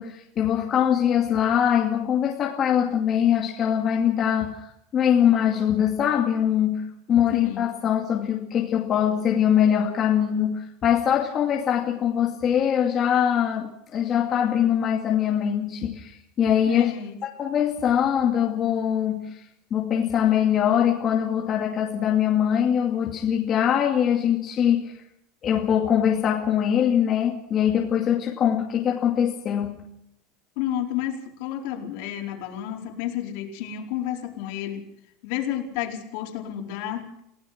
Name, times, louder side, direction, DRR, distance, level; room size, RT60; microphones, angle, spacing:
voice 1, 0.0-16.9 17.4-19.4 19.7-24.9 25.4-29.9, left 9 dB, 25° left, -1 dB, 2.4 m, -22 dB
voice 2, 7.3-7.7 16.7-17.2 30.6-34.8 35.2-37.1, left 11 dB, 55° left, 1 dB, 4.6 m, -31 dB
29.0 x 17.5 x 5.9 m, 0.76 s
supercardioid pair, 175°, 0 cm